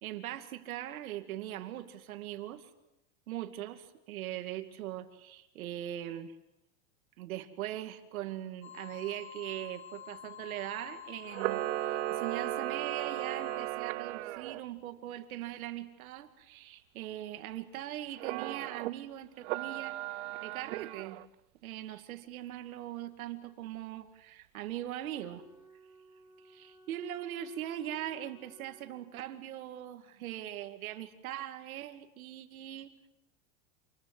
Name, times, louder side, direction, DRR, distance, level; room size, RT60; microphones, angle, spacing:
voice 1, 0.0-2.7 3.3-6.4 7.2-20.0 20.4-21.2 21.6-25.4 26.4-32.9, right 12 dB, 80° right, 2.4 m, -41 dB
sound 1, 8.6-13.7, left 9 dB, 50° left, 3.1 m, -48 dB
Camera, 11.3-14.6 18.2-18.9 19.4-21.3, right 17 dB, 55° right, 0.9 m, -36 dB
Wind instrument woodwind instrument, 25.1-29.5, right 2 dB, ahead, 4.1 m, -59 dB
28.0 x 21.5 x 7.9 m
supercardioid pair, 160°, 42 cm